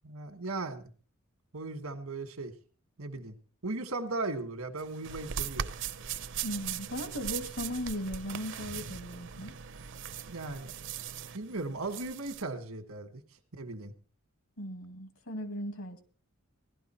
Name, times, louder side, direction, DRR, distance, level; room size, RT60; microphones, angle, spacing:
voice 1, 0.0-0.8 1.5-2.5 3.0-3.4 3.6-5.7 10.3-10.7 11.3-13.2 13.6-13.9, right 3 dB, 90° right, 1.6 m, -37 dB
sound 1, 4.8-12.4, right 8 dB, 60° right, 0.7 m, -39 dB
voice 2, 6.4-9.6 14.6-16.0, equal, 70° left, 2.2 m, -37 dB
17.0 x 11.5 x 4.4 m
head